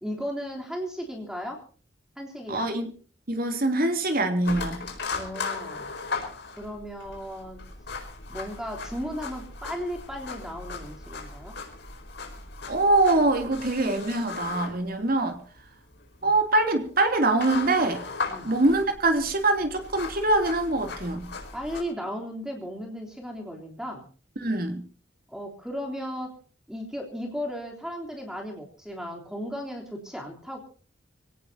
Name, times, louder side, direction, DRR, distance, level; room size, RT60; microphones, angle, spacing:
voice 1, 0.0-1.6 2.2-2.7 5.1-5.9 6.5-7.6 8.3-11.6 16.2-16.3 18.3-18.5 21.5-24.0 25.3-26.4 26.7-30.6, equal, 5° right, 1 dB, 3.4 m, -35 dB
voice 2, 2.5-2.9 3.3-4.8 12.7-15.4 16.2-18.0 18.4-21.3 24.4-24.8, right 2 dB, 50° right, 6 dB, 3.0 m, -24 dB
sound 1, 4.4-21.8, left 4 dB, 60° left, 4.7 m, -37 dB
24.5 x 18.0 x 2.8 m, 0.41 s
head